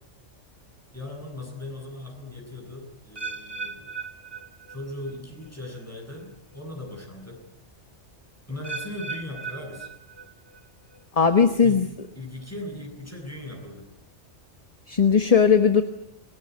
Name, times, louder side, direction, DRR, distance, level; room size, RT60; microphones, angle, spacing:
voice 1, 0.9-3.9 4.7-6.3 6.5-7.4 8.5-9.9 11.2-11.8 12.2-13.9, left 1 dB, 10° left, 1 dB, 7.5 m, -38 dB
sound 1, 3.2-5.2 5.4-5.9 6.5-6.6 8.6-10.6 10.9-11.4 12.0-12.1, right 4 dB, 20° right, 2.1 m, -38 dB
voice 2, 11.2-11.9 14.9-15.8, left 6 dB, 30° left, 9 dB, 1.3 m, -18 dB
27.5 x 20.5 x 9.5 m, 0.79 s
omnidirectional pair, 1.2 m